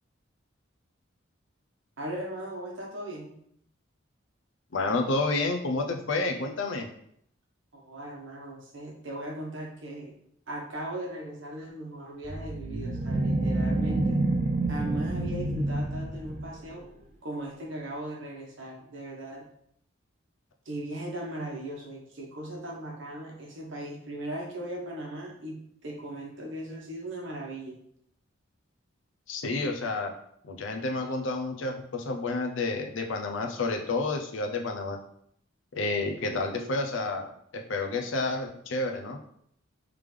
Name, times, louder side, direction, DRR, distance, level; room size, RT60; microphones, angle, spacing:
voice 1, 2.0-3.3 7.7-10.1 10.5-14.2 14.7-16.8 17.2-19.4 20.6-27.8 36.3-36.7, right 1 dB, 65° right, -1 dB, 1.0 m, -38 dB
voice 2, 4.7-6.9 29.3-30.1 30.4-35.0 35.8-39.2, left 3 dB, 70° left, 3 dB, 0.6 m, -30 dB
sound 1, 12.2-16.6, right 2 dB, 35° right, 0.4 m, -28 dB
3.6 x 3.3 x 3.3 m, 0.69 s
head